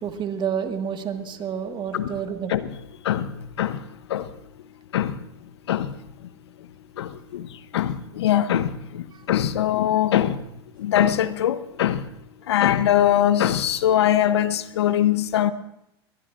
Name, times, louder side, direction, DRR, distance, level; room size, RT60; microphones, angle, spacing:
voice 1, 0.0-2.6, right 8 dB, 35° right, 1.6 m, -29 dB
voice 2, 7.0-7.5 7.7-10.4 10.8-12.0 12.5-15.5, left 11 dB, 80° left, 0.8 m, -22 dB
21.5 x 20.0 x 2.5 m
hypercardioid pair, 95°, 14 cm